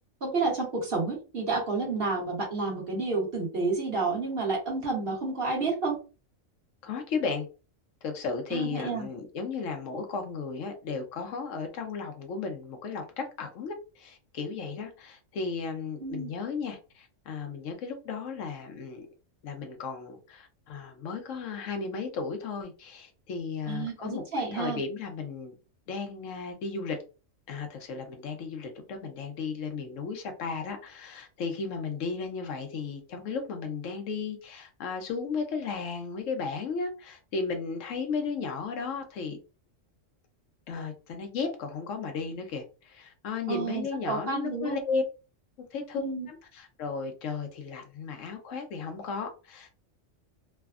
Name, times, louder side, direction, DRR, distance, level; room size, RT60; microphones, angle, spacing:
voice 1, 0.2-6.0 8.5-9.1 16.0-16.3 23.7-24.8 43.5-44.8 46.0-46.3, right 3 dB, 50° right, 1.2 m, -30 dB
voice 2, 6.8-7.5 8.0-19.1 19.4-25.6 25.9-27.0 27.5-39.4 40.7-45.0 45.7-49.8, left 5 dB, 75° left, 1.0 m, -35 dB
3.3 x 2.0 x 2.3 m
omnidirectional pair, 1.3 m